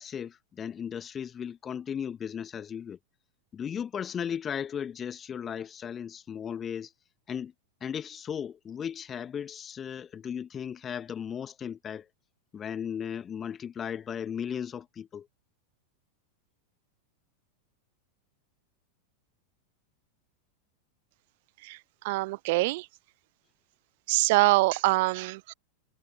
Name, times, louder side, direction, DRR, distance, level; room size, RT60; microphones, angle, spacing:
voice 1, 0.0-3.0 3.5-6.9 7.3-7.5 7.8-12.1 12.5-15.3, left 8 dB, 25° left, 1.3 m, -36 dB
voice 2, 22.0-22.9 24.1-25.5, right 22 dB, 50° right, 0.4 m, -24 dB
figure-of-eight pair, 90°, 0 cm